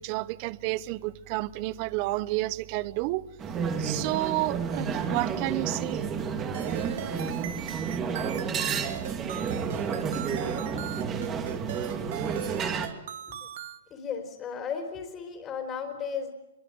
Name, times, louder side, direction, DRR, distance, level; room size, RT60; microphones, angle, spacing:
voice 1, 0.0-3.2 3.8-6.0, right 18 dB, 35° right, 0.8 m, -30 dB
sound 1, 3.4-12.9, right 6 dB, 20° right, 2.4 m, -31 dB
sound 2, 6.5-13.8, right 11 dB, 55° right, 1.5 m, -39 dB
voice 2, 13.9-16.3, left 6 dB, 20° left, 3.8 m, -35 dB
24.0 x 23.0 x 7.9 m
hypercardioid pair, 155°, 0 cm